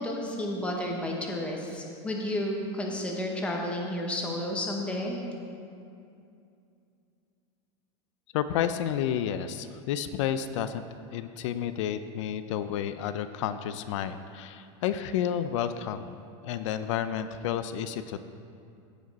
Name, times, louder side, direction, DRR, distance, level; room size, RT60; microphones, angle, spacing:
voice 1, 0.0-5.2, left 1 dB, 5° left, 0 dB, 0.9 m, -31 dB
voice 2, 8.3-10.8 11.1-16.2 16.4-18.2, left 9 dB, 75° left, 11 dB, 0.4 m, -31 dB
15.0 x 5.1 x 4.1 m, 2.5 s
supercardioid pair, 170°, 16 cm